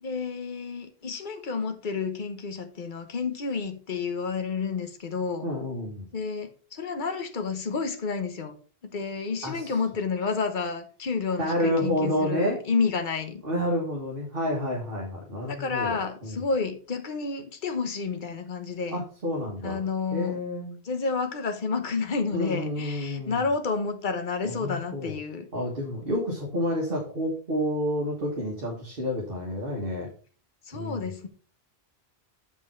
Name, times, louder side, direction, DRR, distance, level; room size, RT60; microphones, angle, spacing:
voice 1, 0.0-5.5 6.1-8.5 8.9-13.4 15.5-19.0 19.6-20.4 20.8-25.5 30.7-31.3, left 4 dB, 50° left, 7 dB, 1.2 m, -30 dB
voice 2, 5.4-6.1 9.4-9.6 11.4-12.6 13.4-16.4 18.9-19.8 20.1-20.8 22.3-23.4 24.4-25.1 25.5-30.1 30.7-31.1, left 1 dB, 60° right, -2 dB, 1.9 m, -29 dB
7.2 x 5.5 x 4.4 m, 0.40 s
omnidirectional pair, 1.1 m